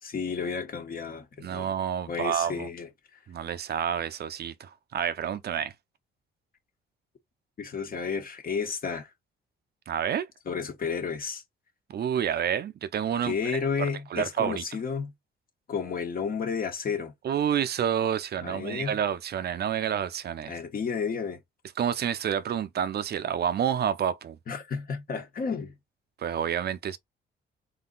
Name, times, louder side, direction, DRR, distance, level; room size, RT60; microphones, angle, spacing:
voice 1, 0.0-1.7 2.1-2.9 7.6-9.1 10.5-11.4 13.2-15.1 15.7-17.1 18.4-19.0 20.5-21.4 24.5-25.7, left 5 dB, 45° left, 1.5 m, -32 dB
voice 2, 1.4-2.7 3.3-5.7 9.9-10.3 11.9-14.6 17.2-20.5 21.8-24.4 26.2-27.0, right 9 dB, 55° right, 0.7 m, -29 dB
4.0 x 2.7 x 3.9 m
cardioid pair, 90°, 20 cm